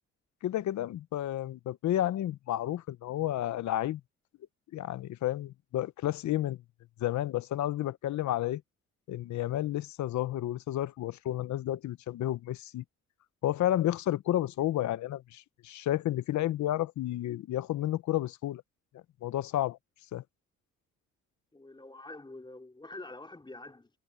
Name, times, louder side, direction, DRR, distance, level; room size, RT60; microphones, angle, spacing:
voice 1, 0.4-4.0 4.7-6.6 7.0-8.6 9.1-12.8 13.4-18.6 19.2-19.8 20.1-20.2, left 13 dB, 70° left, 0.9 m, -31 dB
voice 2, 21.5-23.9, left 2 dB, 15° left, 3.7 m, -46 dB
cardioid pair, 90°, 30 cm